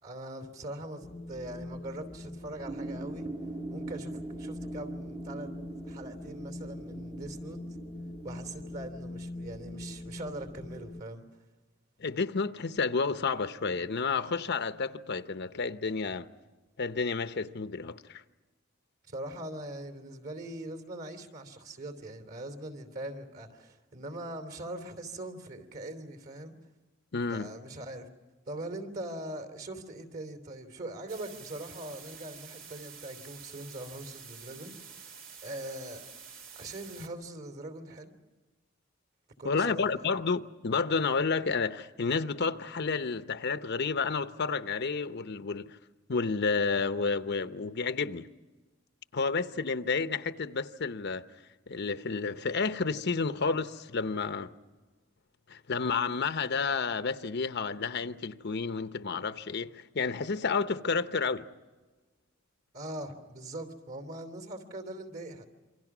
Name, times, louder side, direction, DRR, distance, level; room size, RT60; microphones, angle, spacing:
voice 1, 0.0-3.3 3.7-5.5 5.8-7.6 8.2-11.2 19.1-26.5 27.3-28.1 28.5-35.1 35.4-36.0 36.5-38.1 39.4-39.9 62.7-65.5, right 1 dB, 50° right, 3.2 m, -41 dB
Wind, 1.0-11.0, left 1 dB, 30° left, 0.7 m, -43 dB
sound 1, 2.7-8.9, right 3 dB, 25° right, 1.1 m, -42 dB
voice 2, 12.0-16.3 16.8-18.2 27.1-27.5 39.4-45.8 46.1-48.3 49.1-51.2 51.7-54.5 55.5-61.5, left 4 dB, 55° left, 0.8 m, -30 dB
sound 2, 31.1-37.1, right 6 dB, 75° right, 2.6 m, -48 dB
27.5 x 24.5 x 6.1 m
head